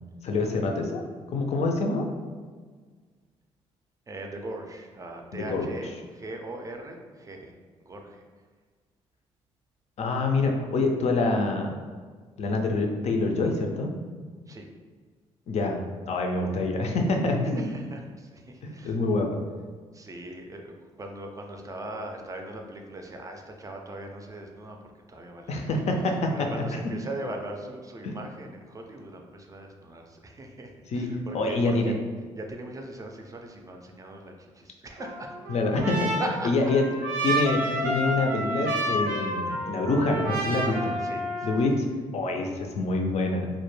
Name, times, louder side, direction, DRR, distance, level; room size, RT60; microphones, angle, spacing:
voice 1, 0.2-1.0 1.3-2.1 5.3-5.7 10.0-11.8 12.4-13.9 15.5-17.7 18.6-19.4 25.5-26.6 28.0-28.1 30.9-31.1 31.3-31.9 35.5-36.1 36.4-36.9 37.2-40.7 41.4-41.9 42.1-43.5, left 2 dB, 55° left, 2 dB, 0.4 m, -26 dB
voice 2, 4.1-7.5 7.8-8.2 14.5-14.7 17.5-19.0 19.9-25.7 26.3-31.9 32.3-35.4 36.2-36.7 37.6-37.8 40.6-41.6, right 1 dB, 25° right, 2 dB, 0.4 m, -40 dB
Trumpet, 35.0-41.7, right 1 dB, 85° right, 0.5 m, -30 dB
2.1 x 2.1 x 3.1 m, 1.5 s
supercardioid pair, 55°, 13 cm